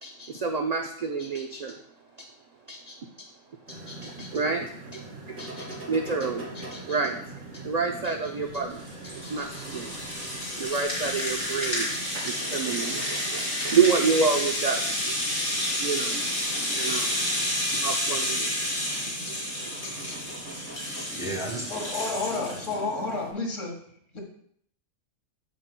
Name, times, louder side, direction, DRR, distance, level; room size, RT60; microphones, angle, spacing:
voice 1, 0.0-1.8 2.2-2.3 2.7-3.3 3.7-7.2 7.5-15.3 15.5-20.2, right 5 dB, 50° right, 4 dB, 0.5 m, -30 dB
sound 1, 3.7-23.3, right 2 dB, 75° right, 3.7 m, -42 dB
Rattle (instrument), 8.5-22.7, left 1 dB, 45° left, 3.2 m, -30 dB
voice 2, 20.7-23.0, right 1 dB, 5° right, -6 dB, 3.1 m, -37 dB
voice 3, 21.7-23.8 24.1-24.2, left 3 dB, 70° left, 0 dB, 2.0 m, -30 dB
14.0 x 5.8 x 2.2 m, 0.65 s
omnidirectional pair, 1.3 m